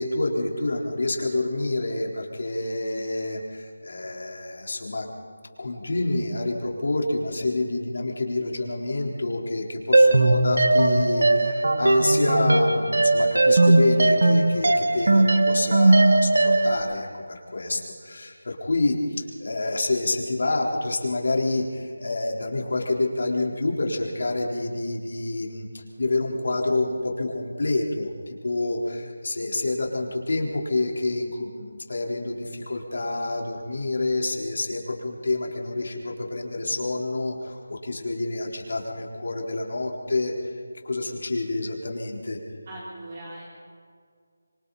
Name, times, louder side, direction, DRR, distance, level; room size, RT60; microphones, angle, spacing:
voice 1, 0.0-5.1 5.6-25.7 26.0-40.3 40.8-42.4, left 2 dB, 60° left, 0 dB, 4.2 m, -28 dB
sound 1, 9.9-16.8, right 2 dB, 65° right, 1.7 m, -19 dB
voice 2, 42.7-43.4, right 1 dB, 35° right, -5 dB, 4.1 m, -39 dB
26.0 x 23.5 x 4.3 m, 2.1 s
figure-of-eight pair, 175°, 0 cm